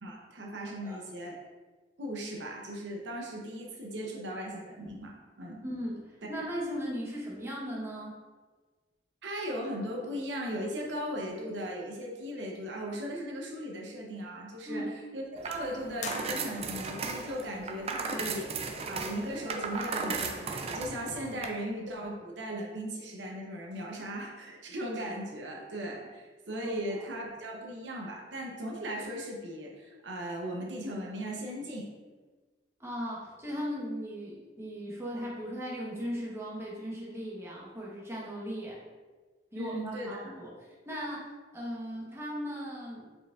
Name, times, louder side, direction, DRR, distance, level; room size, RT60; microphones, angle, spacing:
voice 1, 0.0-1.4 2.0-5.6 9.2-31.9 39.5-40.2, equal, 70° right, -1 dB, 0.8 m, -37 dB
voice 2, 5.6-8.2 14.6-14.9 26.6-27.0 32.8-38.8 39.5-40.5 40.8-43.2, equal, 15° right, -5 dB, 1.0 m, -37 dB
sound 1, 15.4-21.5, right 4 dB, 35° right, 0.4 m, -36 dB
sound 2, 16.0-17.0, left 6 dB, 40° left, 0.3 m, -42 dB
5.0 x 4.4 x 2.4 m, 1.3 s
head